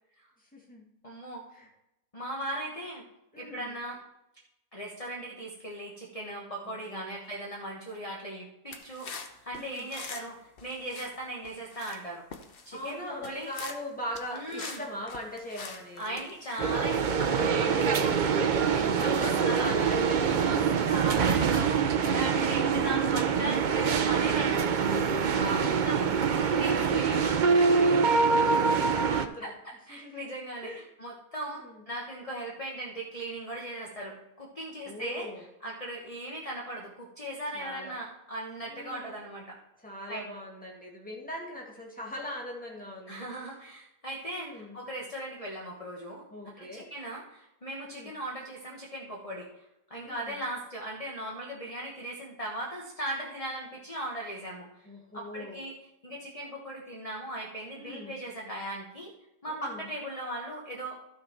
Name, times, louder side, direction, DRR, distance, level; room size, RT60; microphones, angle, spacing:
voice 1, 0.5-0.8 1.5-1.7 3.3-3.7 6.7-7.2 9.5-9.9 12.7-16.4 17.5-18.1 18.6-20.9 25.2-26.4 26.8-29.5 29.9-30.3 30.6-30.8 31.5-31.8 34.9-35.4 37.5-37.9 38.7-39.2 39.8-43.2 44.3-44.8 46.3-46.9 47.8-48.1 50.0-50.4 54.9-55.6 57.8-58.2 59.5-59.9, left 1 dB, 5° left, -2 dB, 2.0 m, -40 dB
voice 2, 1.0-1.4 2.1-3.0 3.4-4.0 4.7-12.2 12.6-13.5 14.3-14.8 16.0-19.7 20.8-24.7 25.4-25.6 25.8-26.1 26.4-27.3 28.2-28.9 29.4-35.3 35.6-39.6 40.1-40.2 43.1-49.5 49.9-54.9 55.1-55.7 56.0-59.1 59.4-61.0, right 1 dB, 25° left, -2 dB, 1.5 m, -38 dB
sound 1, 8.7-10.3 10.6-11.1 11.4-12.0 12.3-12.9 13.2-13.8 14.1-16.6 17.0-17.3, left 4 dB, 45° left, 1.0 m, -44 dB
sound 2, 16.6-29.3, right 6 dB, 75° right, 0.4 m, -25 dB
13.5 x 6.3 x 4.4 m, 0.86 s
omnidirectional pair, 1.7 m